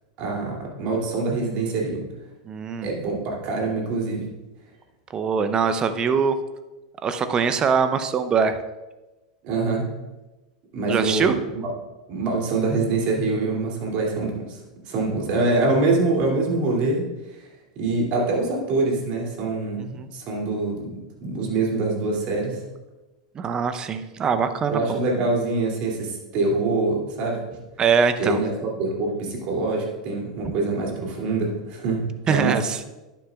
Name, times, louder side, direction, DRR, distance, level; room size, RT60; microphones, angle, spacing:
voice 1, 0.2-2.0 2.8-4.3 9.4-9.9 10.7-11.7 12.1-14.6 14.8-17.0 17.3-17.5 17.8-22.6 24.7-27.4 28.2-28.5 28.8-32.6, right 3 dB, 50° right, -1 dB, 2.7 m, -25 dB
voice 2, 2.5-2.9 5.1-6.4 7.0-8.6 10.9-11.3 19.9-20.1 23.3-25.0 27.8-28.4 32.3-32.8, right 6 dB, 30° right, 11 dB, 0.7 m, -22 dB
11.0 x 9.2 x 2.4 m, 1.1 s
hypercardioid pair, 100°, 3 cm